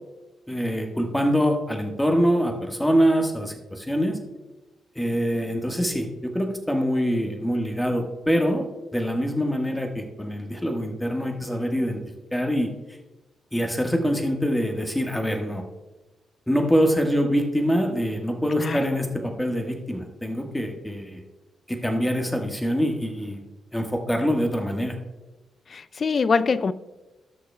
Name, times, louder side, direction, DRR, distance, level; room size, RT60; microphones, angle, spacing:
voice 1, 0.5-4.2 4.9-8.7 8.9-12.0 12.3-12.7 13.5-15.6 16.5-21.2 21.7-23.4 23.7-25.0, equal, 10° left, 1.5 m, -24 dB
voice 2, 25.7-26.7, left 5 dB, 45° left, 0.4 m, -23 dB
17.5 x 6.5 x 2.3 m
hypercardioid pair, 40°, 0 cm